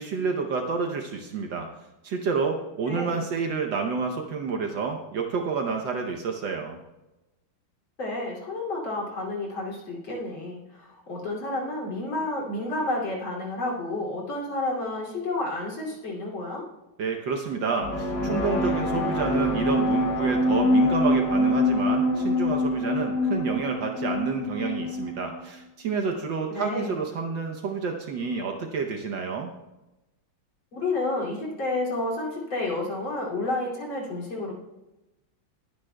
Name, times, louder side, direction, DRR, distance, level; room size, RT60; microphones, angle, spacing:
voice 1, 0.0-1.7 2.0-6.8 17.0-29.5, right 5 dB, 65° right, 3 dB, 1.4 m, -29 dB
voice 2, 2.9-3.2 8.0-16.6 26.5-26.9 30.7-34.5, left 2 dB, 70° left, -4 dB, 3.6 m, -30 dB
sound 1, 17.8-25.4, left 1 dB, 45° left, 5.0 m, -24 dB
20.5 x 9.8 x 2.3 m, 0.99 s
omnidirectional pair, 2.3 m